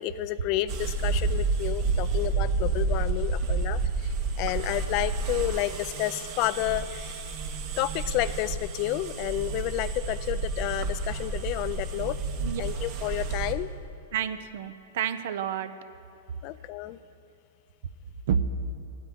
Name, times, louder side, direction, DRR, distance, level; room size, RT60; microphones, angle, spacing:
voice 1, 0.0-3.8 4.4-7.2 7.8-12.2 12.6-13.7 16.4-17.0, left 15 dB, 45° left, 15 dB, 0.4 m, -30 dB
sound 1, 0.7-13.5, right 4 dB, 45° right, 1.2 m, -30 dB
voice 2, 14.1-15.7 18.3-18.4, right 8 dB, 65° right, 12 dB, 0.6 m, -29 dB
9.6 x 8.1 x 9.0 m, 2.5 s
hypercardioid pair, 120°, 0 cm